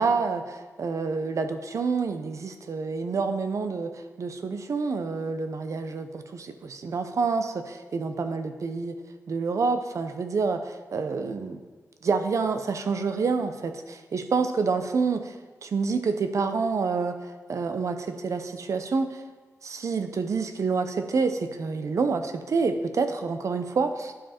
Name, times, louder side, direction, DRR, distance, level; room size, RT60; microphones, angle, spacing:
voice 1, 0.0-3.9 4.2-8.9 9.3-11.6 12.0-19.2 19.6-24.1, right 4 dB, 60° right, 8 dB, 0.7 m, -28 dB
11.5 x 5.0 x 4.3 m, 1.3 s
wide cardioid pair, 110°, 6 cm